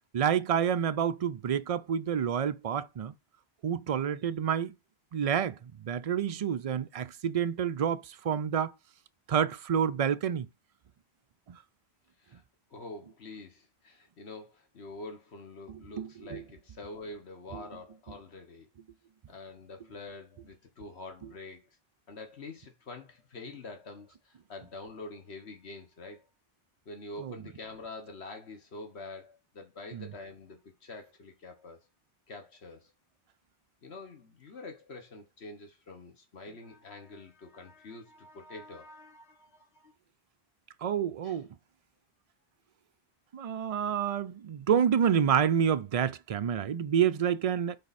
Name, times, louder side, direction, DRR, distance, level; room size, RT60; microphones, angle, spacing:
voice 1, 0.1-3.1 3.6-4.8 5.1-8.7 9.3-10.5 11.5-11.6 15.7-16.4 17.5-17.6 27.2-27.3 29.9-30.1 40.8-41.5 43.3-47.8, right 8 dB, 45° right, 0.5 m, -28 dB
voice 2, 12.7-18.7 19.3-21.6 22.1-26.3 26.8-31.8 32.3-32.9 33.8-39.9 41.2-41.4, left 2 dB, 85° left, 1.6 m, -46 dB
10.5 x 4.2 x 4.2 m
omnidirectional pair, 1.1 m